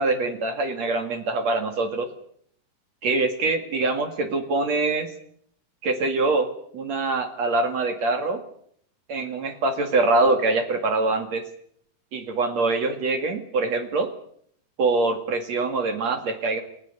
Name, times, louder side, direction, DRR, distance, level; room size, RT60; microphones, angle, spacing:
voice 1, 0.0-2.1 3.0-5.1 5.8-6.5 6.7-8.4 9.1-11.4 12.1-14.1 14.8-16.6, right 3 dB, 50° right, 7 dB, 3.1 m, -24 dB
29.0 x 14.5 x 9.6 m, 0.67 s
omnidirectional pair, 4.1 m